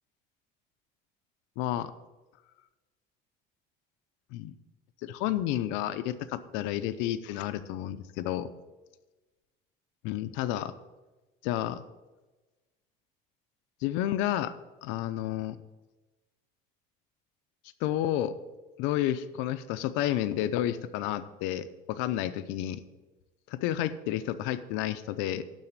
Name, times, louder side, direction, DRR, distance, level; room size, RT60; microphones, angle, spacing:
voice 1, 1.6-1.9 4.3-4.5 5.0-8.5 10.0-10.7 11.4-11.8 13.8-14.5 14.8-15.6 17.8-18.3 18.8-22.8 23.5-25.4, left 12 dB, 85° left, 12 dB, 0.7 m, -31 dB
12.0 x 4.2 x 8.1 m, 1.2 s
cardioid pair, 160°, 19 cm